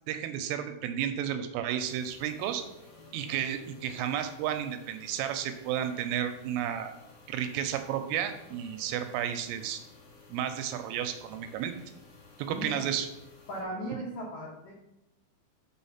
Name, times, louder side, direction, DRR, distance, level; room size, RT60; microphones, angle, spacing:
voice 1, 0.1-2.6 3.1-6.9 7.3-9.8 10.3-11.7 12.4-13.1, right 10 dB, 85° right, 8 dB, 3.1 m, -32 dB
sound 1, 1.8-13.6, left 3 dB, 55° left, 1.6 m, -55 dB
voice 2, 12.5-12.9 13.5-14.7, right 1 dB, 90° left, -4 dB, 1.8 m, -37 dB
6.3 x 5.8 x 5.7 m, 0.89 s
omnidirectional pair, 5.9 m